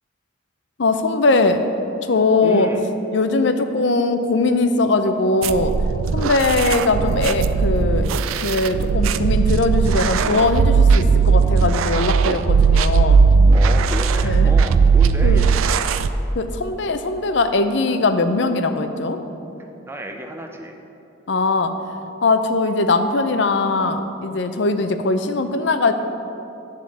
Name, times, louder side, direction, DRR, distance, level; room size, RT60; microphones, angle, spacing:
voice 1, 0.8-1.7 2.1-2.7 3.1-5.7 6.1-8.1 8.4-13.2 14.2-14.5 15.2-15.4 16.3-19.2 21.3-21.7 22.2-25.9, left 3 dB, 60° left, 9 dB, 0.5 m, -20 dB
voice 2, 2.4-2.8 13.5-15.9 19.9-20.8, right 1 dB, 10° right, 4 dB, 0.4 m, -31 dB
sound 1, 5.4-16.1, right 5 dB, 85° right, 0.4 m, -17 dB
11.0 x 3.7 x 7.5 m, 2.8 s
head